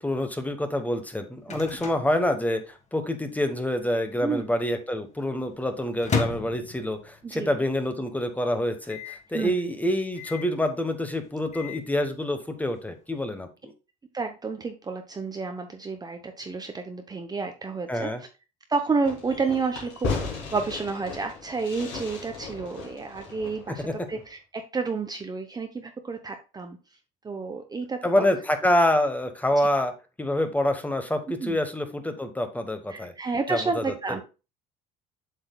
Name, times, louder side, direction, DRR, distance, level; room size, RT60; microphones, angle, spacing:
voice 1, 0.0-13.7 17.9-18.2 23.8-23.9 28.0-29.9 30.2-33.1 33.5-33.9, left 1 dB, 10° left, 8 dB, 1.2 m, -26 dB
Microwave oven, 0.9-3.1 3.3-3.4 3.6-4.2 4.7-7.4 7.8-7.9 8.1-8.2 8.8-9.3 10.1-10.6 11.2-11.9, left 5 dB, 35° left, 1.5 m, -35 dB
voice 2, 7.2-7.6 9.3-9.5 14.1-18.1 18.7-20.1 20.5-23.8 24.1-26.8 27.2-28.3 31.4-31.6 32.9-34.2, right 4 dB, 20° right, 5 dB, 0.8 m, -30 dB
Fireworks, 19.0-24.3, left 4 dB, 70° left, 3.1 m, -36 dB
7.8 x 6.3 x 2.3 m, 0.30 s
supercardioid pair, 100°, 19 cm